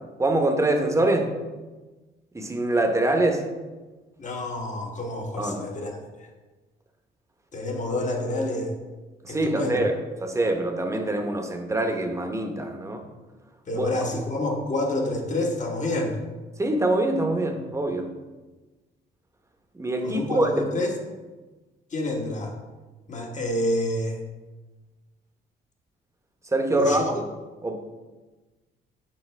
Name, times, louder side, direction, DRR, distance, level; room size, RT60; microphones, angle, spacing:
voice 1, 0.2-1.3 2.3-3.4 5.4-5.7 9.2-9.9 10.2-13.0 13.7-13.9 16.6-18.1 19.7-20.6 26.5-27.2 27.6-27.7, right 2 dB, 15° right, 4 dB, 0.9 m, -24 dB
voice 2, 4.2-5.9 6.2-6.3 7.5-8.7 9.3-9.9 13.7-16.2 20.0-21.0 21.9-22.5 23.1-24.2 26.7-27.0, left 1 dB, 40° left, 1 dB, 1.2 m, -28 dB
7.5 x 4.3 x 3.3 m, 1.2 s
cardioid pair, 90°, 20 cm